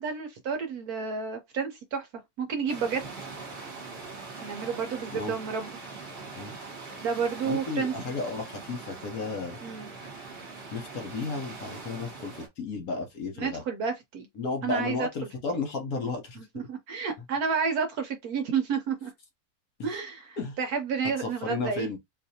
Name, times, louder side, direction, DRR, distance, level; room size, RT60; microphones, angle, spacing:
voice 1, 0.0-2.1 2.4-3.0 4.4-5.7 7.0-7.9 9.6-9.9 13.4-14.3 14.6-15.1 16.4-19.1 19.8-21.9, right 6 dB, 65° right, 1.0 m, -30 dB
sound 1, 2.7-12.5, right 4 dB, 40° right, 1.4 m, -42 dB
voice 2, 7.4-9.6 10.7-13.6 14.4-16.5 19.8-20.0 20.4-20.6 21.2-22.0, left 3 dB, 60° left, 1.1 m, -33 dB
4.0 x 2.5 x 2.7 m
omnidirectional pair, 2.0 m